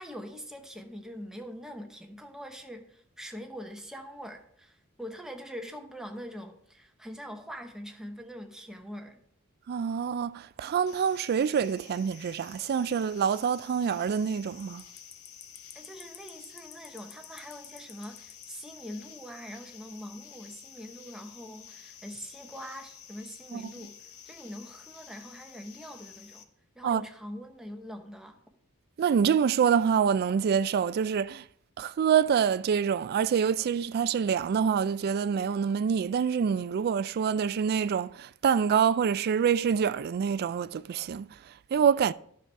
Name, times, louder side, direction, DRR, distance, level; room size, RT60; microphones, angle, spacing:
voice 1, 0.0-9.2 15.7-26.5 26.7-28.4, equal, 5° right, 0.9 m, -43 dB
voice 2, 9.7-14.8 23.5-23.7 26.8-27.0 29.0-31.5 31.8-42.1, right 7 dB, 45° right, 0.3 m, -26 dB
sound 1, 10.9-26.4, left 8 dB, 80° left, 0.8 m, -50 dB
11.5 x 6.1 x 3.4 m
head